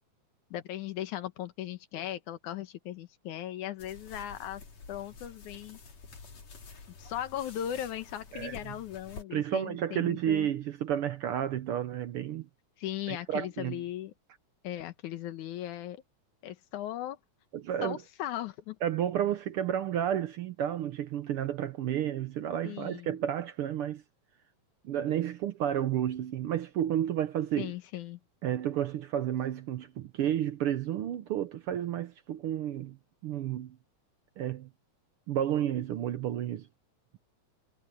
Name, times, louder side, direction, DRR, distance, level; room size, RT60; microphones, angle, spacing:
voice 1, 0.5-4.6 4.9-5.8 6.9-10.5 12.8-14.1 14.6-16.0 16.4-17.2 17.8-18.8 22.6-23.2 27.6-28.2, left 12 dB, 80° left, 2.6 m, -38 dB
sound 1, 3.8-9.2, left 4 dB, 60° left, 4.6 m, -49 dB
voice 2, 9.3-12.5 13.1-13.8 17.5-18.0 18.8-24.0 24.8-27.7 28.4-33.0 33.2-33.8 34.4-34.7 35.3-36.7, right 10 dB, 75° right, 1.3 m, -31 dB
omnidirectional pair, 3.4 m